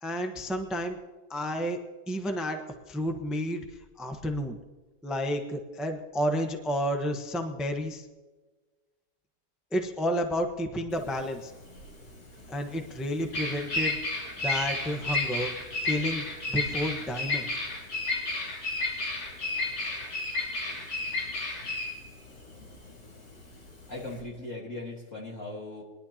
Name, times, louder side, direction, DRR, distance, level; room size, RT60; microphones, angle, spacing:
voice 1, 0.0-1.0 1.3-1.8 2.1-3.6 4.0-4.6 5.0-8.1 9.7-11.5 12.5-14.0 14.4-15.5 15.8-17.5, equal, ahead, 4 dB, 0.7 m, -31 dB
Bird vocalization bird call bird song, 10.9-24.2, left 2 dB, 85° left, 3.7 m, -32 dB
voice 2, 22.5-23.3 23.9-25.8, left 2 dB, 45° left, -2 dB, 2.1 m, -40 dB
21.5 x 11.5 x 2.9 m, 1.3 s
omnidirectional pair, 1.9 m